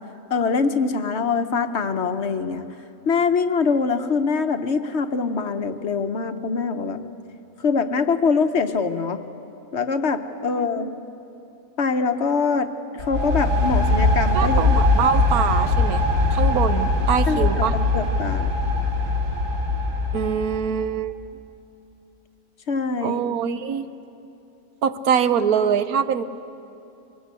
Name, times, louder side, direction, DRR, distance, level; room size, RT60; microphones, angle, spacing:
voice 1, 0.3-2.7 3.1-7.0 7.6-9.2 9.7-10.9 11.8-14.6 17.3-18.5 22.7-23.2, left 5 dB, 55° left, 8 dB, 1.0 m, -23 dB
voice 2, 10.3-10.9 14.3-16.0 16.3-17.8 20.1-21.1 23.0-23.9 24.8-26.2, right 7 dB, 80° right, 12 dB, 1.3 m, -24 dB
sound 1, 13.0-20.7, left 2 dB, 60° right, 3.2 m, -21 dB
23.5 x 20.0 x 8.2 m, 2.9 s
omnidirectional pair, 1.5 m